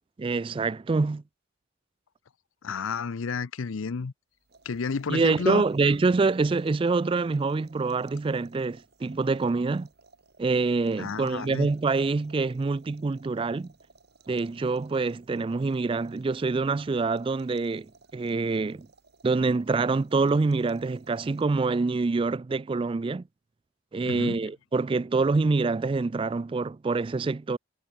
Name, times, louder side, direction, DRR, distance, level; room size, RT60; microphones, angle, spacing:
voice 1, 0.2-1.2 5.1-9.9 10.4-13.7 14.3-18.9 19.2-23.2 23.9-27.6, right 3 dB, 25° right, 0.3 m, -26 dB
voice 2, 2.6-4.1 4.7-5.6 11.0-11.7 24.1-24.4, left 5 dB, 75° left, 0.6 m, -31 dB
sound 1, 4.3-21.7, right 3 dB, 50° right, 2.7 m, -60 dB
head